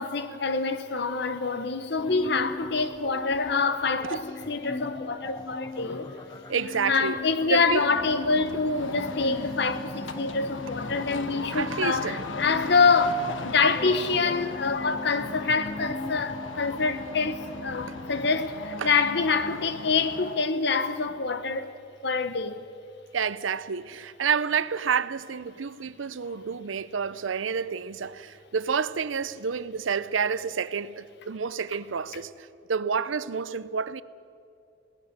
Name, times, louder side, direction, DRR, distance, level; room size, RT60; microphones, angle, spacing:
voice 1, 0.0-6.2 6.9-21.7 22.0-22.6, left 4 dB, 60° left, 1.1 m, -26 dB
sound 1, 2.0-18.4, left 3 dB, 20° left, 0.5 m, -40 dB
voice 2, 6.5-7.2 7.5-7.9 11.5-12.2 17.9-18.0 18.8-18.9 23.1-34.0, right 6 dB, 85° right, 0.6 m, -29 dB
sound 2, 7.8-20.6, left 3 dB, 90° left, 1.3 m, -38 dB
22.0 x 18.0 x 6.8 m
head